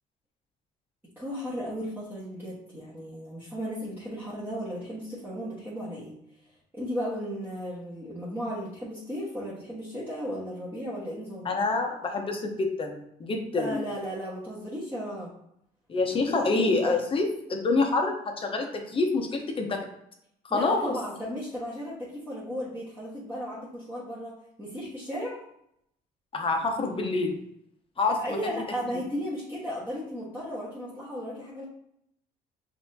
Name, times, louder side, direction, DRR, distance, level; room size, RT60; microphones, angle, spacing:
voice 1, 1.2-6.1 6.7-11.5 13.6-15.3 16.1-17.0 20.5-25.4 28.1-31.6, equal, 10° right, -9 dB, 1.2 m, -35 dB
voice 2, 11.4-13.8 15.9-19.9 20.4-20.9 26.3-27.4 28.0-28.2 28.4-28.5, left 3 dB, 30° left, 3 dB, 0.9 m, -27 dB
5.9 x 2.8 x 2.7 m, 0.75 s
cardioid pair, 110°, 17 cm